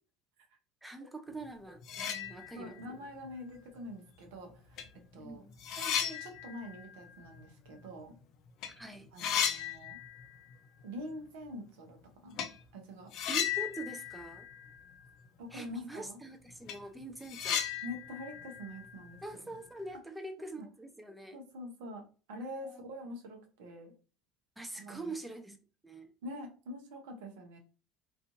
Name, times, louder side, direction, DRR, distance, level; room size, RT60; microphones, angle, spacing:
voice 1, 0.8-3.1 5.2-5.6 8.8-9.1 13.3-14.5 15.5-17.7 19.2-21.4 22.6-22.9 24.6-25.6 25.8-26.1, right 2 dB, 5° right, 0.5 m, -44 dB
sound 1, 1.5-1.6 1.8-2.9 3.2-3.3 4.3-4.4 4.8-8.2 8.5-8.7 9.0-10.5 10.8-10.9 12.4-12.6 13.1-15.3 15.5-15.6 16.1-16.2 16.5-19.7, left 8 dB, 55° left, 0.4 m, -37 dB
voice 2, 2.5-4.8 5.1-5.4 5.7-8.1 9.1-10.0 10.8-12.0 12.2-12.4 12.7-13.1 15.4-16.2 17.8-19.2 19.4-19.5 20.4-20.7 21.3-22.0 22.3-23.9 24.7-25.1 26.2-27.6, left 1 dB, 70° right, 0.7 m, -45 dB
2.5 x 2.4 x 2.5 m
hypercardioid pair, 70°, 0 cm